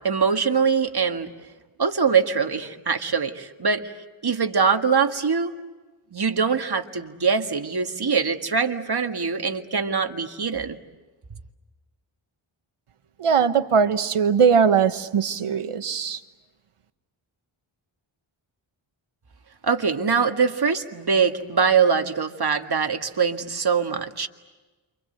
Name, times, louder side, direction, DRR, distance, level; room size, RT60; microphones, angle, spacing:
voice 1, 0.0-1.3 1.8-3.9 4.2-5.6 6.1-10.8 19.6-24.3, right 5 dB, 50° right, 6 dB, 1.8 m, -23 dB
voice 2, 13.2-16.2, right 6 dB, 85° right, 10 dB, 1.3 m, -20 dB
29.0 x 25.5 x 7.9 m, 1.2 s
wide cardioid pair, 75°, 50 cm